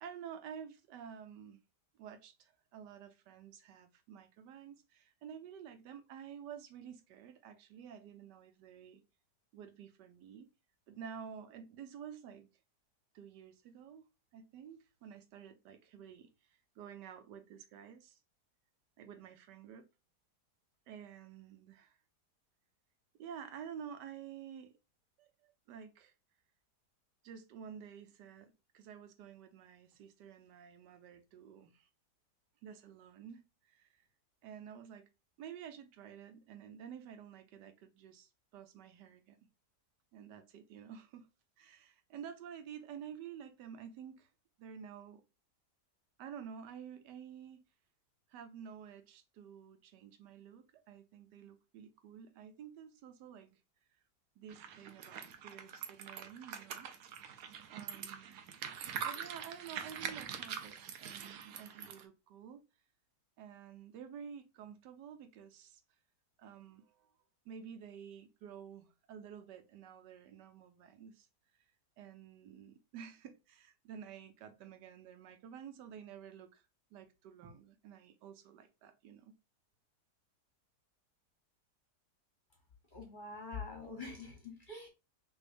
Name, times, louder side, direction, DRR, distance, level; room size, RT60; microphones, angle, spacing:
voice 1, 0.0-1.6 1.9-9.0 9.5-10.5 10.9-12.5 13.1-14.0 14.3-18.2 19.0-19.9 20.9-22.0 23.2-24.7 25.2-26.1 27.2-31.9 32.6-34.1 34.4-35.0 35.4-39.4 40.1-41.3 41.6-44.3 44.6-45.2 46.2-47.6 48.3-53.6 54.4-56.9 57.7-58.4 59.0-62.7 63.4-65.8 66.4-67.1 67.4-71.3 72.0-76.6 76.9-79.4, right 8 dB, 85° right, 1.3 m, -51 dB
sound 1, 54.5-62.0, right 8 dB, 65° right, 1.0 m, -44 dB
voice 2, 82.9-84.9, left 4 dB, 35° left, 0.9 m, -45 dB
6.0 x 2.8 x 2.5 m
omnidirectional pair, 1.8 m